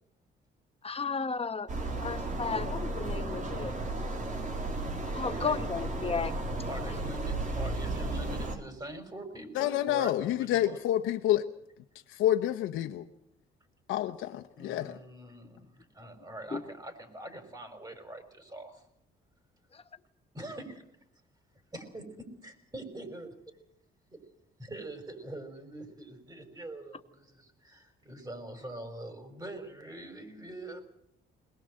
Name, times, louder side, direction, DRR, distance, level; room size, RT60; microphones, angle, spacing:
voice 1, 0.8-1.7 2.0-3.7 5.1-6.3 16.5-16.6, left 5 dB, 30° left, 9 dB, 1.4 m, -33 dB
sound 1, 1.7-8.6, right 2 dB, 40° right, 3.7 m, -34 dB
voice 2, 5.2-5.6 6.3-6.4 6.7-10.8 14.6-18.8 20.3-20.8 21.7-23.3 24.6-30.8, right 1 dB, 20° right, 7 dB, 5.3 m, -44 dB
voice 3, 9.5-11.5 12.1-13.0 13.9-15.0, left 12 dB, 90° left, 7 dB, 0.9 m, -28 dB
21.5 x 20.0 x 7.7 m, 0.74 s
cardioid pair, 90°, 20 cm